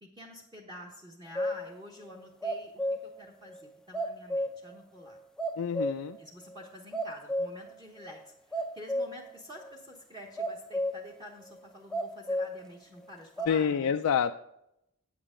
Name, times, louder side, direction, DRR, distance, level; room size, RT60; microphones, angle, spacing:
voice 1, 0.0-5.2 6.2-13.9, left 1 dB, 20° right, 0 dB, 1.1 m, -48 dB
sound 1, 1.4-1.7 2.2-3.2 3.5-3.6 3.9-4.7 5.1-5.2 5.4-6.2 6.5-6.6 6.9-7.7 8.0-8.2 8.5-9.3 9.6-9.8 10.4-11.1 11.9-12.6 13.4-13.5, equal, 5° left, 0.5 m, -32 dB
voice 2, 5.6-6.2 13.5-14.3, left 7 dB, 70° left, 6 dB, 0.4 m, -27 dB
8.9 x 8.8 x 3.7 m, 0.81 s
head